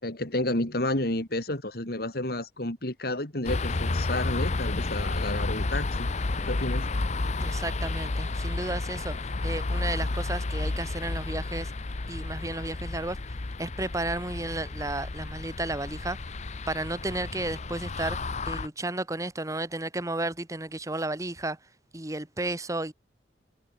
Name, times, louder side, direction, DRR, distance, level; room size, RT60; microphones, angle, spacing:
voice 1, 0.0-6.1 6.4-6.9, left 1 dB, 60° left, 3.6 m, -31 dB
sound 1, 3.4-18.7, left 2 dB, 40° left, 0.7 m, -31 dB
voice 2, 7.4-9.1 9.4-11.7 12.1-13.2 13.6-16.2 16.7-18.2 18.4-21.6 21.9-22.9, right 2 dB, 20° right, 1.4 m, -33 dB
head